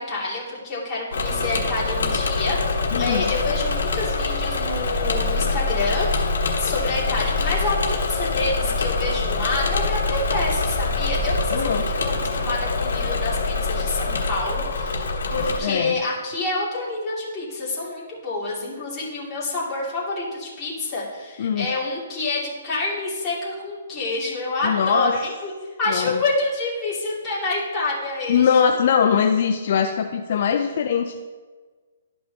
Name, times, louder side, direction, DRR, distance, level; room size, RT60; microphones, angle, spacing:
voice 1, 0.0-6.3 6.6-28.5 30.5-30.7, left 2 dB, 15° left, -8 dB, 2.5 m, -28 dB
Engine / Mechanisms, 1.1-15.6, left 3 dB, 75° left, 1.2 m, -24 dB
voice 2, 2.9-3.3 11.5-11.8 15.6-16.0 21.4-21.7 24.6-25.2 25.9-26.2 28.3-31.2, left 7 dB, 50° left, 5 dB, 0.4 m, -21 dB
sound 1, 4.6-12.5, equal, 10° right, 0.9 m, -37 dB
12.0 x 5.4 x 2.8 m, 1.4 s
hypercardioid pair, 160°, 0 cm